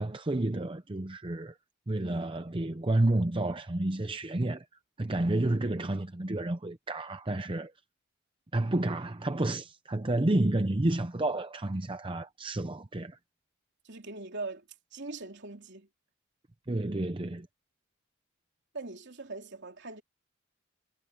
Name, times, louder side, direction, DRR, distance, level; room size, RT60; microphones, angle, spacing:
voice 1, 0.0-1.6 1.9-4.7 5.0-7.7 8.5-13.2 16.7-17.5, right 2 dB, 25° right, 0.7 m, -30 dB
voice 2, 13.8-14.6 14.9-15.9 18.7-20.0, right 3 dB, 55° right, 3.2 m, -41 dB
head